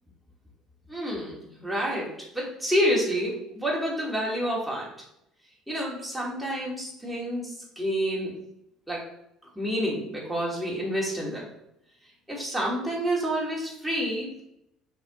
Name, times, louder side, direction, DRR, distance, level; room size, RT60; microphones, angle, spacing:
voice 1, 0.9-4.9 5.7-8.3 8.9-9.1 9.6-11.5 12.3-14.4, equal, 5° right, -5 dB, 2.4 m, -29 dB
5.3 x 4.7 x 3.8 m, 0.78 s
supercardioid pair, 80°, 0 cm